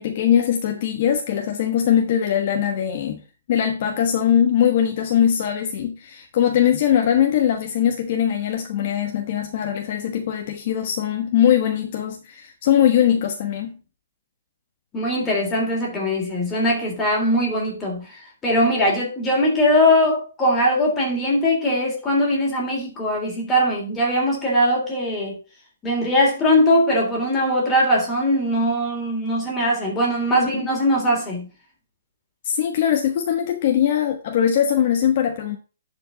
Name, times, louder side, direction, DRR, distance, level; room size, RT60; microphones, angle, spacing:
voice 1, 0.0-3.2 3.5-13.8 30.3-30.5 32.4-35.6, left 9 dB, 40° left, 1.2 m, -21 dB
voice 2, 14.9-25.4 25.8-31.5, equal, 10° left, 3.3 m, -21 dB
11.0 x 5.2 x 3.9 m
hypercardioid pair, 165°, 0 cm